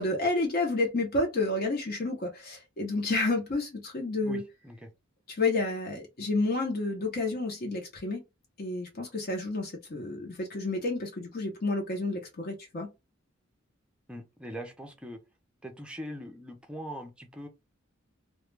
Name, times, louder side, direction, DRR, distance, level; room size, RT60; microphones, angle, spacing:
voice 1, 0.0-4.4 5.3-8.2 8.6-12.9, left 2 dB, 45° left, 0.6 m, -30 dB
voice 2, 14.1-15.2 15.6-17.5, equal, 5° right, 0.5 m, -41 dB
2.2 x 2.1 x 3.1 m
head